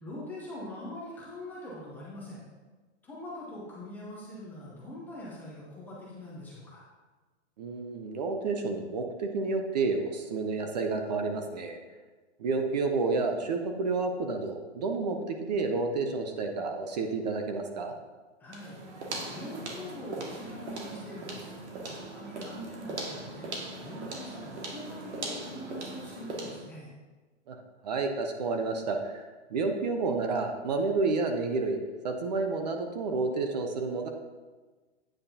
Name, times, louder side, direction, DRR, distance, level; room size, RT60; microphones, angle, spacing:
voice 1, 0.0-2.4 3.0-6.9 18.4-18.8 19.3-21.5 21.9-23.5 23.8-26.9, left 1 dB, 5° left, -7 dB, 0.6 m, -43 dB
voice 2, 7.6-11.8 12.4-18.0 27.5-27.6 27.8-34.1, right 3 dB, 35° right, 4 dB, 0.6 m, -30 dB
sound 1, 18.5-26.7, right 2 dB, 70° right, 2.0 m, -39 dB
9.0 x 7.5 x 2.8 m, 1.3 s
hypercardioid pair, 165°, 35 cm